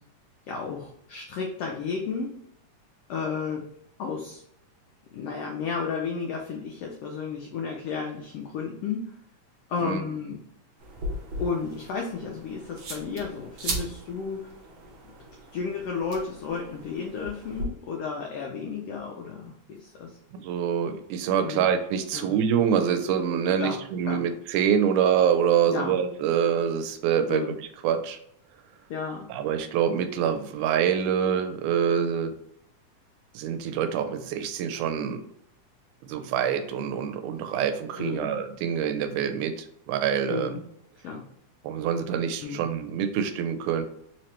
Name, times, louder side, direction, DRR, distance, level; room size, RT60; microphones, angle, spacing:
voice 1, 0.5-2.3 3.1-3.7 4.0-4.4 5.1-9.1 9.7-10.4 11.4-14.4 15.5-20.2 21.4-21.6 22.1-22.3 23.6-23.8 24.1-24.2 25.7-26.0 27.3-27.6 28.9-29.3 38.0-38.3 40.3-40.6 41.0-41.3 42.4-42.6, left 5 dB, 85° left, 0 dB, 1.3 m, -32 dB
sound 1, 10.8-17.6, right 1 dB, 65° right, 1.4 m, -38 dB
voice 2, 20.3-28.2 29.3-32.3 33.4-35.2 36.0-40.5 41.6-43.8, right 8 dB, 90° right, 8 dB, 2.0 m, -26 dB
4.6 x 2.9 x 3.1 m, 0.74 s
omnidirectional pair, 3.4 m